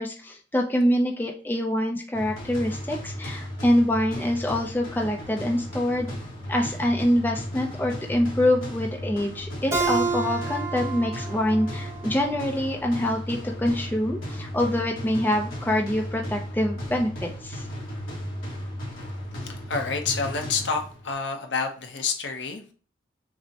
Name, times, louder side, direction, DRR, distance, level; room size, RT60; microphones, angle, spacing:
voice 1, 0.0-6.1 6.5-17.7, left 1 dB, 10° left, 1 dB, 0.4 m, -25 dB
sound 1, 2.1-21.1, equal, 90° left, 1.5 m, -35 dB
Keyboard (musical), 9.7-12.9, right 4 dB, 15° right, 0.9 m, -30 dB
voice 2, 19.4-22.7, left 4 dB, 65° left, 4 dB, 0.7 m, -29 dB
6.0 x 2.1 x 2.8 m, 0.39 s
head